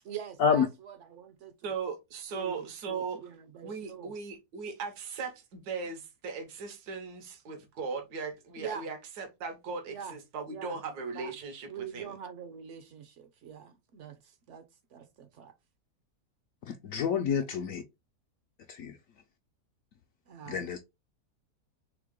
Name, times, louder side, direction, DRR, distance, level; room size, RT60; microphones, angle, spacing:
voice 1, 0.0-1.7 2.3-4.1 8.6-8.9 9.9-10.1 10.5-10.8 11.1-11.3 11.7-15.5 20.3-20.6, right 8 dB, 60° right, 0.8 m, -44 dB
voice 2, 1.6-3.3 3.6-12.1, right 5 dB, 80° right, 1.5 m, -38 dB
voice 3, 16.8-17.8 18.7-18.9 20.5-20.8, left 6 dB, 70° left, 0.9 m, -27 dB
3.7 x 3.3 x 3.6 m
omnidirectional pair, 1.7 m